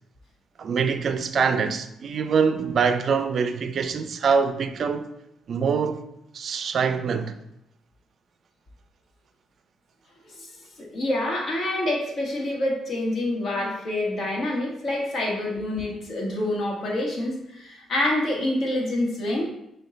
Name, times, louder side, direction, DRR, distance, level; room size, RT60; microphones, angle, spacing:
voice 1, 0.6-5.1 5.5-6.0 6.3-7.3, right 6 dB, 55° right, 0.4 m, -24 dB
voice 2, 10.8-19.5, left 1 dB, 50° left, 1.2 m, -27 dB
5.3 x 2.3 x 3.7 m
cardioid pair, 90°, 0 cm